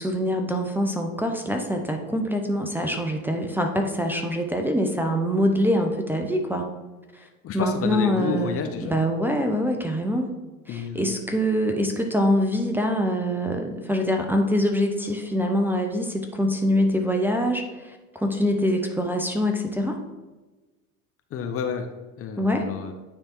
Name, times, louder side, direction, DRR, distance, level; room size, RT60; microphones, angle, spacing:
voice 1, 0.0-6.7 7.5-10.3 10.7-20.0 22.4-22.6, equal, 5° right, 1 dB, 0.7 m, -24 dB
voice 2, 7.2-8.9 10.7-11.2 11.7-11.8 21.3-21.9 22.2-22.9, left 6 dB, 30° left, 6 dB, 0.7 m, -30 dB
9.5 x 3.5 x 4.5 m, 1.2 s
hypercardioid pair, 80°, 43 cm